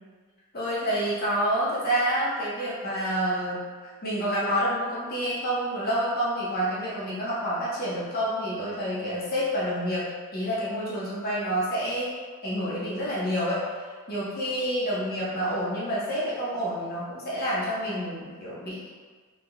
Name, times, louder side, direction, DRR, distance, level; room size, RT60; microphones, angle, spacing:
voice 1, 0.5-10.1 10.3-12.1 12.4-13.6 14.1-18.8, equal, 45° left, -8 dB, 1.1 m, -28 dB
3.9 x 3.8 x 2.3 m, 1.5 s
head